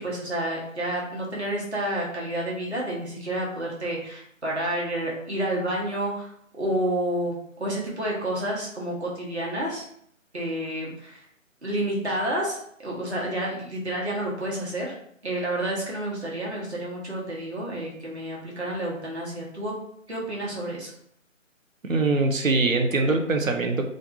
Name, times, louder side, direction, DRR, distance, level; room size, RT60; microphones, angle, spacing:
voice 1, 0.0-6.3 6.5-9.9 10.3-11.2 11.6-14.9 15.2-19.7 20.1-20.9, right 1 dB, 55° right, -4 dB, 1.2 m, -29 dB
voice 2, 21.8-23.9, right 3 dB, 75° right, 4 dB, 0.7 m, -23 dB
3.2 x 2.5 x 2.7 m, 0.69 s
figure-of-eight pair, 155°, 40 cm